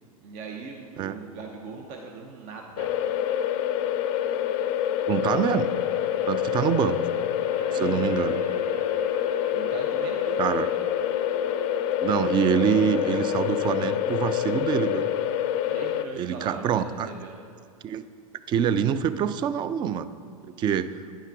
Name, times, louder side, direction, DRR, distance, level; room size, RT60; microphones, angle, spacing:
voice 1, 0.2-3.0 7.7-8.1 9.5-10.4 15.7-17.4, right 4 dB, 45° right, 2 dB, 0.8 m, -40 dB
sound 1, 2.8-16.1, left 10 dB, 45° left, 0.4 m, -26 dB
voice 2, 5.1-5.7 6.3-7.0 7.7-8.4 10.4-10.7 12.0-15.1 16.2-17.1 17.8-18.1 18.5-20.1 20.4-20.9, right 8 dB, 25° right, 13 dB, 0.3 m, -25 dB
sound 2, 5.4-14.9, right 2 dB, 80° right, 0.9 m, -42 dB
9.8 x 5.6 x 4.7 m, 2.3 s
hypercardioid pair, 95°, 19 cm